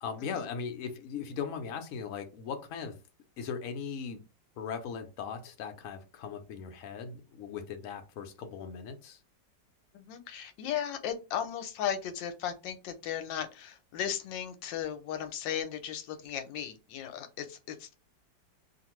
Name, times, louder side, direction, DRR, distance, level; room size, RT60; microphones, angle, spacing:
voice 1, 0.0-3.0 3.4-4.2 4.6-9.2, left 6 dB, 65° left, 0.8 m, -38 dB
voice 2, 9.9-18.0, left 9 dB, 90° left, 1.3 m, -36 dB
2.9 x 2.5 x 2.9 m
omnidirectional pair, 2.0 m